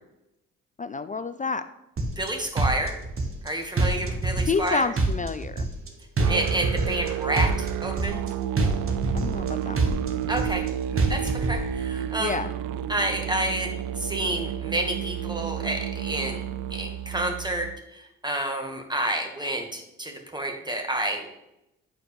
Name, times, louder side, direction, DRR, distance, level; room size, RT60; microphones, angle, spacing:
voice 1, 0.8-1.6 4.4-5.7 9.1-10.0 12.2-12.5, left 4 dB, 25° left, 11 dB, 0.4 m, -29 dB
sound 1, 2.0-2.3 2.6-3.5 3.8-4.7 5.0-5.9 6.2-7.1 7.4-8.3 8.6-9.5 9.8-10.7 11.0-11.6, right 3 dB, 40° right, 1.3 m, -25 dB
voice 2, 2.2-2.9 3.4-4.9 6.3-8.2 10.3-10.7 11.1-12.4 12.9-16.4 16.7-21.4, right 1 dB, 15° right, 2 dB, 1.7 m, -29 dB
Musical instrument, 6.2-17.8, right 10 dB, 70° right, 0.4 m, -31 dB
8.9 x 4.5 x 3.4 m, 0.87 s
hypercardioid pair, 40°, 33 cm